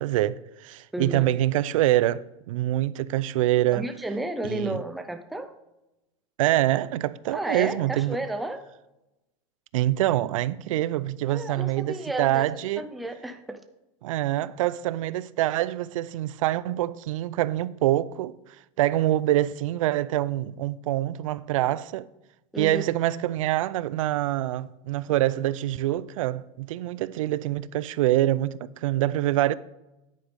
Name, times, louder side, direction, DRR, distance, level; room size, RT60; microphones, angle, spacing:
voice 1, 0.0-3.9 4.4-4.8 6.4-8.2 9.7-12.9 14.0-18.3 18.8-22.1 22.6-29.5, right 14 dB, 90° right, 0.5 m, -25 dB
voice 2, 0.9-1.2 3.7-5.5 7.3-8.7 11.3-12.4 12.8-13.6 22.5-22.8, right 1 dB, ahead, 0.3 m, -32 dB
9.9 x 9.0 x 3.5 m
supercardioid pair, 175°, 16 cm